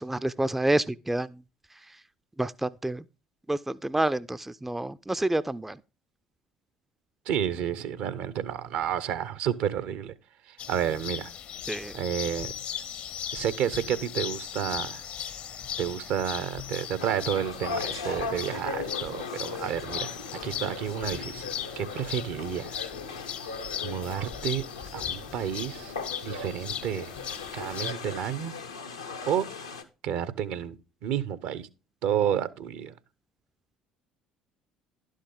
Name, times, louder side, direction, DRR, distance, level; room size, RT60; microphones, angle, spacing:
voice 1, 0.0-1.4 2.4-3.0 3.5-5.8 11.7-11.9, right 1 dB, 10° right, 0.4 m, -28 dB
voice 2, 7.3-10.1 10.4-11.3 11.9-12.5 13.3-15.0 15.8-21.5 21.8-22.9 23.8-24.6 24.9-25.9 26.2-27.1 27.5-28.5 29.3-29.5 30.0-30.8 31.0-31.7 32.0-32.9, right 9 dB, 60° right, 0.7 m, -30 dB
sound 1, 10.6-27.9, left 9 dB, 50° left, 0.7 m, -38 dB
sound 2, 17.0-29.8, left 4 dB, 85° left, 0.9 m, -38 dB
11.5 x 6.4 x 3.7 m
figure-of-eight pair, 55°, 3 cm